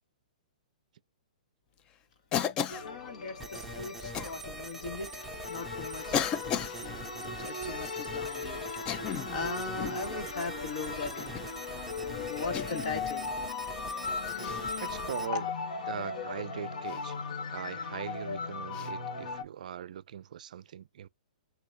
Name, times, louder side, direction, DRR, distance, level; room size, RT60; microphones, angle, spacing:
Cough, 2.3-2.9 4.1-4.3 5.2-5.3 6.1-6.8 8.7-9.4 9.8-10.1 11.2-11.5 12.5-12.9 14.4-14.6 16.9-17.0 18.7-18.9, left 8 dB, 20° left, 0.4 m, -33 dB
sound 1, 2.7-19.4, left 4 dB, 75° left, 1.4 m, -38 dB
voice 1, 2.8-8.7 8.9-11.4 12.0-13.3 14.5-14.8 15.3-15.5, left 4 dB, 55° left, 1.7 m, -40 dB
sound 2, 3.4-15.3, right 2 dB, ahead, 0.8 m, -43 dB
voice 2, 14.8-15.4 15.9-17.2 17.5-21.1, right 9 dB, 65° right, 0.4 m, -40 dB
6.8 x 2.7 x 2.7 m
hypercardioid pair, 160°, 4 cm